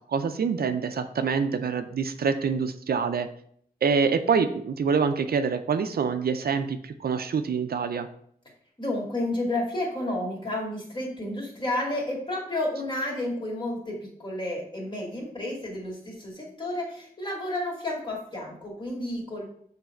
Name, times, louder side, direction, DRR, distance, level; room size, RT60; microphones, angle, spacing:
voice 1, 0.1-3.3 3.8-8.1, right 5 dB, 80° right, 9 dB, 0.5 m, -26 dB
voice 2, 8.8-19.4, left 1 dB, 30° left, -3 dB, 2.2 m, -31 dB
7.0 x 3.3 x 4.4 m, 0.65 s
wide cardioid pair, 110°, 16 cm